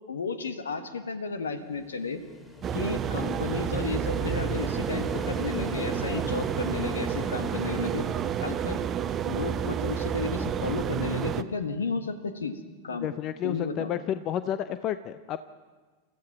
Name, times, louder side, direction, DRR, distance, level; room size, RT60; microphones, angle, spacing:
voice 1, 0.1-2.2 2.7-8.1 8.4-8.9 9.2-13.1 13.4-14.0, left 4 dB, 70° left, 10 dB, 1.6 m, -33 dB
sound 1, 1.4-10.2, left 1 dB, 15° left, 3.2 m, -42 dB
sound 2, 2.6-11.4, right 9 dB, 25° right, 0.8 m, -30 dB
voice 2, 13.0-15.4, left 10 dB, 35° left, 13 dB, 0.6 m, -31 dB
29.5 x 14.5 x 6.0 m, 1.3 s
figure-of-eight pair, 90°, 0 cm